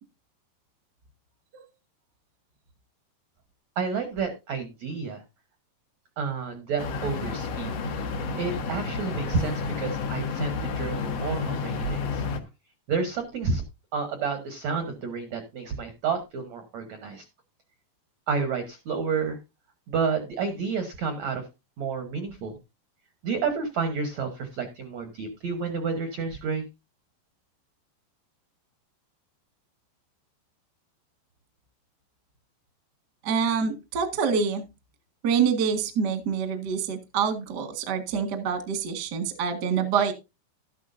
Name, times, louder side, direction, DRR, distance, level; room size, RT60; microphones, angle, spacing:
voice 1, 3.7-5.2 6.2-7.7 8.4-12.2 12.9-13.6 13.9-17.2 18.3-19.4 19.9-21.4 21.8-22.6 23.2-26.6, right 5 dB, 80° right, 7 dB, 1.6 m, -30 dB
sound 1, 6.8-12.4, left 4 dB, 85° left, 1.4 m, -31 dB
voice 2, 33.2-34.6 35.2-40.1, right 6 dB, 65° right, 7 dB, 1.0 m, -26 dB
12.5 x 11.0 x 2.6 m, 0.25 s
omnidirectional pair, 5.1 m